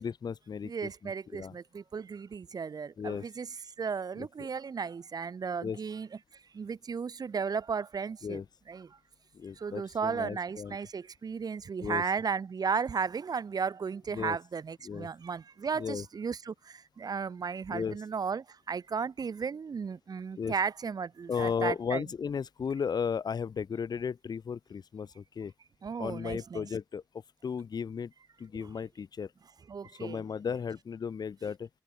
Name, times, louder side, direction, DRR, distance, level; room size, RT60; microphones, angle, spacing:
voice 1, 0.0-1.6 3.0-3.3 4.2-4.5 5.6-5.8 8.2-8.4 9.3-10.8 11.8-12.0 14.1-14.4 14.8-15.1 15.8-16.1 17.7-18.0 20.4-20.5 21.3-25.5 26.0-27.0 27.4-28.1 28.4-29.3 29.9-31.7, left 6 dB, 90° left, 4.2 m, -35 dB
voice 2, 0.6-3.5 3.8-6.1 6.6-8.4 8.7-8.9 9.6-16.5 17.0-22.0 25.8-26.7 29.7-30.2, right 6 dB, 70° right, 4.3 m, -34 dB
wide cardioid pair, 115°, 7 cm